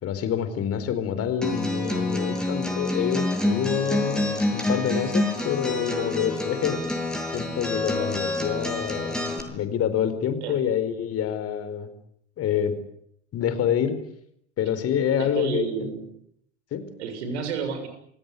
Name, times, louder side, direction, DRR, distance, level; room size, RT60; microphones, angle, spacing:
voice 1, 0.0-6.9 7.3-11.9 12.4-12.8 13.3-14.0 14.6-15.9 16.7-16.8, left 8 dB, 45° left, 11 dB, 4.7 m, -27 dB
Acoustic guitar, 1.4-9.4, left 1 dB, ahead, 7.4 m, -27 dB
voice 2, 15.2-16.1 17.0-17.9, right 6 dB, 70° right, 8 dB, 7.2 m, -30 dB
29.0 x 18.0 x 9.6 m, 0.72 s
hypercardioid pair, 85°, 35 cm